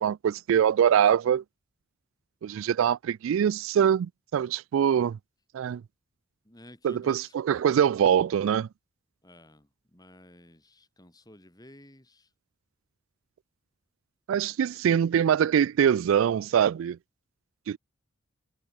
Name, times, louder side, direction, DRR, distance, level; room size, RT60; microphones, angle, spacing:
voice 1, 0.0-1.4 2.4-5.2 5.5-5.8 6.8-8.7 14.3-17.0 17.7-17.8, right 8 dB, 70° right, 0.3 m, -23 dB
voice 2, 6.4-7.3 9.2-12.3, left 1 dB, 20° left, 3.6 m, -52 dB
head